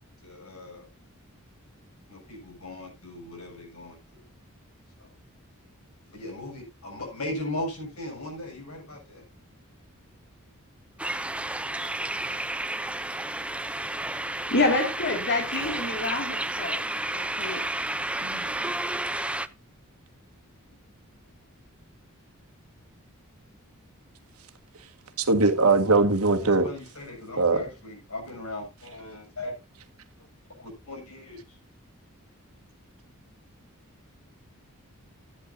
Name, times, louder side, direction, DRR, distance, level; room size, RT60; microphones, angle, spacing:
voice 1, 0.2-0.9 2.1-4.2 5.0-5.1 6.1-9.2 20.7-20.8 26.4-29.6 30.6-31.6, left 1 dB, 80° left, 7.2 m, -38 dB
sound 1, 11.0-19.5, right 2 dB, 5° right, 0.5 m, -31 dB
voice 2, 14.5-16.9 17.1-17.6 18.2-18.5, left 2 dB, 50° left, 2.5 m, -28 dB
voice 3, 25.2-26.7 27.4-27.6, right 3 dB, 75° right, 1.7 m, -20 dB
14.5 x 10.0 x 2.7 m
head